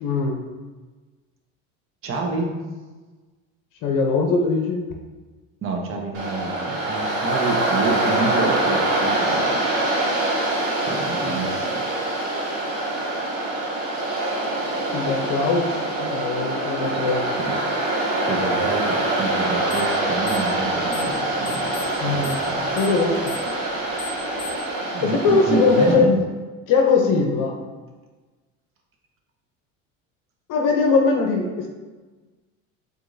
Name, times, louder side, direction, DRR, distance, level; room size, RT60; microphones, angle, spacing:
voice 1, 0.0-0.4 3.8-4.8 11.1-11.5 14.9-17.3 21.0-21.1 22.0-22.4 22.8-23.5 25.0-26.2 26.7-27.6 30.5-31.7, left 4 dB, 55° left, 2 dB, 0.7 m, -21 dB
voice 2, 2.0-2.6 5.6-9.6 10.9-11.9 17.4-17.6 18.3-22.8 24.9-26.1, right 3 dB, 35° right, 1 dB, 0.8 m, -28 dB
Waves surf, 6.1-25.9, right 2 dB, 90° right, 1.2 m, -24 dB
sound 1, 19.7-20.0 20.2-21.2 21.4-24.7, left 6 dB, 20° left, 1.4 m, -37 dB
7.3 x 2.6 x 2.6 m, 1.3 s
hypercardioid pair, 80°, 37 cm